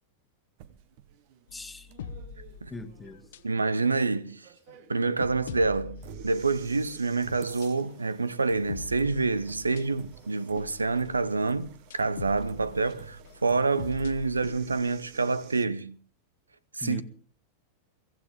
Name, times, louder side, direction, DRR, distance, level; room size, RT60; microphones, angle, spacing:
sound 1, 0.6-15.6, right 9 dB, 45° right, 1.2 m, -50 dB
sound 2, 1.5-3.7 4.1-4.3 4.7-7.2 7.6-8.0 8.4-10.2 10.6-15.2, left 6 dB, 60° left, 1.1 m, -44 dB
voice 1, 1.5-1.9 2.7-3.4 16.8-17.0, left 2 dB, 10° left, 1.6 m, -40 dB
voice 2, 3.4-4.5 4.9-6.0 6.2-16.0 16.7-17.0, right 3 dB, 80° right, 0.7 m, -27 dB
23.0 x 15.0 x 3.6 m
figure-of-eight pair, 90°, 0 cm